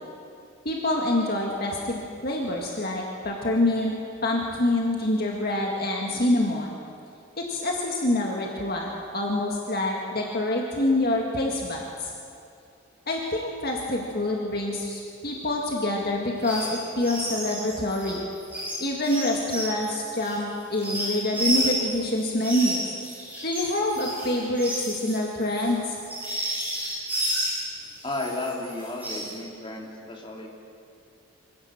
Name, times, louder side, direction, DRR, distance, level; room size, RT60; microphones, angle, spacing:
voice 1, 0.7-3.9 4.2-6.8 7.4-12.1 13.1-18.2 18.8-22.9 23.4-26.0, left 1 dB, 50° left, -1 dB, 2.0 m, -26 dB
sound 1, 16.4-16.7 17.0-22.0 22.4-27.6 28.0-29.3, equal, 10° right, 7.3 m, -31 dB
voice 2, 28.0-30.5, left 2 dB, 25° left, -1 dB, 3.0 m, -33 dB
25.0 x 17.0 x 7.4 m, 2.5 s
head